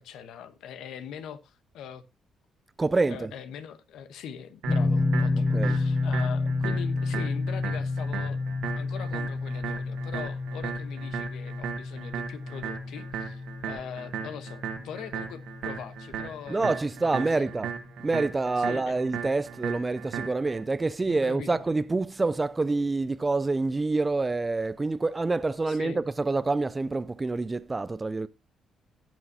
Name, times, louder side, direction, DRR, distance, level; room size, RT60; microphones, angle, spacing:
voice 1, 0.0-2.0 3.1-8.4 8.6-16.8 17.2-17.5 18.6-19.0 21.1-21.6 25.7-26.0, left 8 dB, 85° left, 1.0 m, -42 dB
voice 2, 2.8-3.3 5.5-5.8 16.5-17.7 18.0-28.3, right 3 dB, 20° right, 0.4 m, -27 dB
sound 1, 4.6-20.6, right 8 dB, 80° right, 1.6 m, -37 dB
sound 2, 4.7-17.6, left 3 dB, 20° left, 0.8 m, -30 dB
17.5 x 6.2 x 2.8 m
cardioid pair, 90°, 0 cm